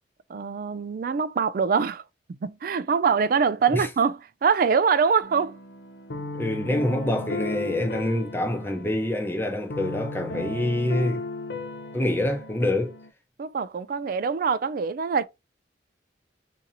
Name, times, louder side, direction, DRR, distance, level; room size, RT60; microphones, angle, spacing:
voice 1, 0.3-2.0 2.4-5.5 13.4-15.2, right 6 dB, 50° right, 0.3 m, -24 dB
sound 1, 5.2-13.1, left 2 dB, 60° left, 0.5 m, -36 dB
voice 2, 6.3-11.2 11.9-13.0, left 1 dB, 10° left, 0.7 m, -26 dB
3.8 x 2.8 x 2.6 m
head